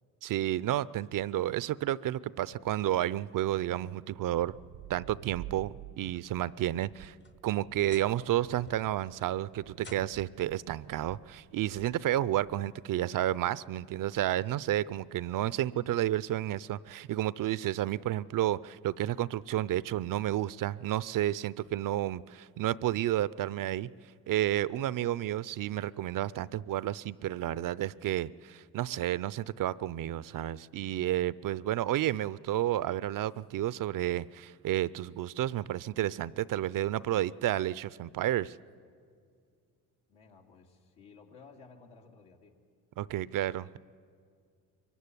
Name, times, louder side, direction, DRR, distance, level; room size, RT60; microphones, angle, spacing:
voice 1, 0.2-4.5 4.9-7.1 7.4-23.9 24.3-38.6 43.0-43.8, right 13 dB, 50° right, 20 dB, 0.5 m, -31 dB
sound 1, 3.6-12.7, right 14 dB, 80° right, 0.8 m, -50 dB
sound 2, 6.9-8.3 8.7-9.1 9.8-10.5 11.6-11.7 12.4-12.5 14.1-14.2, left 4 dB, 25° left, 0.9 m, -53 dB
voice 2, 40.1-42.6, left 4 dB, 80° left, 0 dB, 2.8 m, -55 dB
23.5 x 15.5 x 9.8 m, 2.2 s
supercardioid pair, 75°, 41 cm